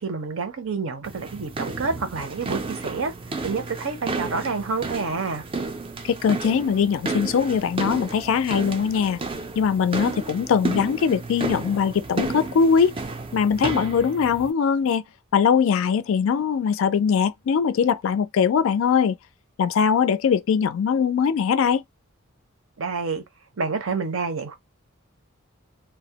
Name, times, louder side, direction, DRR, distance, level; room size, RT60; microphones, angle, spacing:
voice 1, 0.0-3.1 3.4-5.4 22.8-23.2 23.6-24.6, right 4 dB, 70° right, 0.7 m, -28 dB
sound 1, 1.0-14.5, right 3 dB, 25° right, 0.4 m, -32 dB
voice 2, 6.0-9.2 9.6-13.0 13.3-15.0 15.3-19.2 19.6-21.8, left 6 dB, 65° left, 0.3 m, -21 dB
2.2 x 2.0 x 2.7 m
head